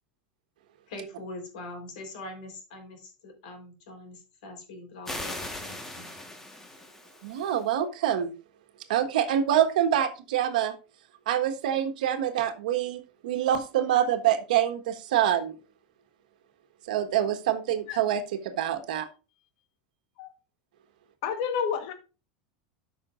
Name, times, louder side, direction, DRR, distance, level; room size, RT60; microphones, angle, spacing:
voice 1, 0.9-6.1, left 2 dB, 75° left, 3 dB, 3.8 m, -43 dB
sound 1, 5.0-7.6, left 1 dB, 10° left, 1.4 m, -39 dB
voice 2, 7.2-8.3 8.9-10.7 11.3-15.5 16.9-19.0, right 10 dB, 85° right, 8 dB, 1.4 m, -26 dB
voice 3, 21.2-21.9, left 7 dB, 60° left, 7 dB, 1.3 m, -29 dB
13.5 x 6.3 x 2.5 m, 0.32 s
supercardioid pair, 150°, 4 cm